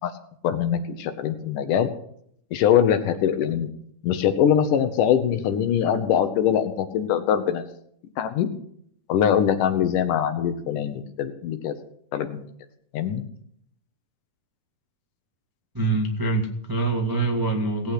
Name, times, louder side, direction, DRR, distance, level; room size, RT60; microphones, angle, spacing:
voice 1, 0.4-1.9 2.5-3.7 4.0-7.6 8.2-8.5 9.1-11.8 12.1-12.4 12.9-13.2, left 9 dB, 70° left, 9 dB, 2.5 m, -22 dB
voice 2, 15.7-17.9, right 3 dB, 15° right, 1 dB, 0.8 m, -24 dB
18.5 x 8.9 x 5.9 m, 0.68 s
omnidirectional pair, 4.0 m